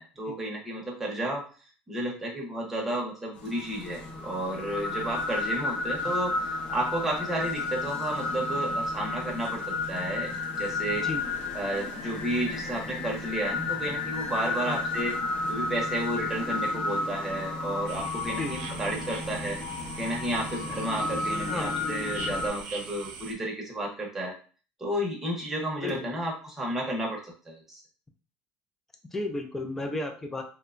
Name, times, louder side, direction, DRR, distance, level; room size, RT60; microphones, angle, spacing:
voice 1, 0.0-1.4 1.9-10.3 10.6-11.1 11.5-15.1 15.5-19.6 20.0-24.3 24.8-27.8, right 1 dB, 10° right, -1 dB, 0.8 m, -32 dB
sound 1, 3.3-22.5, left 3 dB, 45° left, 0.7 m, -32 dB
sound 2, 17.9-23.3, right 4 dB, 85° right, 0.5 m, -41 dB
voice 2, 29.1-30.4, left 2 dB, 10° left, 4 dB, 0.4 m, -33 dB
2.8 x 2.1 x 2.4 m, 0.38 s
cardioid pair, 145°, 3 cm